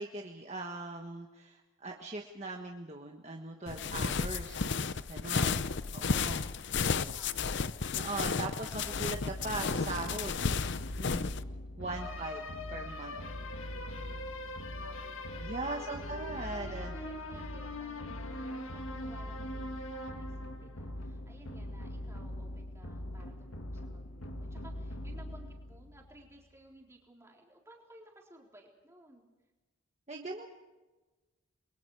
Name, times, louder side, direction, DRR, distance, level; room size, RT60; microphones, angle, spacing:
voice 1, 0.0-4.7 5.1-5.7 5.9-6.5 7.9-10.5 11.0-11.3 11.8-13.2 15.4-16.9 30.1-30.5, right 2 dB, 30° right, 2 dB, 1.4 m, -40 dB
sound 1, 3.7-11.4, left 5 dB, 55° left, 0.6 m, -33 dB
voice 2, 5.4-7.7 11.9-12.3 14.4-29.3, right 1 dB, 10° right, -1 dB, 3.6 m, -57 dB
sound 2, 8.7-26.3, left 1 dB, 70° left, 1.8 m, -41 dB
29.5 x 22.5 x 4.8 m, 1.2 s
head